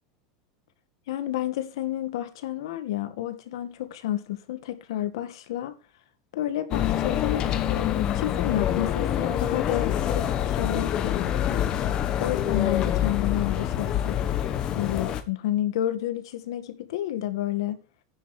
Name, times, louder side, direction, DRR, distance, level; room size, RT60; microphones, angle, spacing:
voice 1, 1.1-5.8 6.3-11.6 12.2-14.2 14.7-17.8, left 13 dB, 80° left, 1.9 m, -30 dB
sound 1, 6.7-15.2, left 10 dB, 30° left, 1.2 m, -26 dB
10.0 x 8.7 x 5.0 m
supercardioid pair, 170°, 3 cm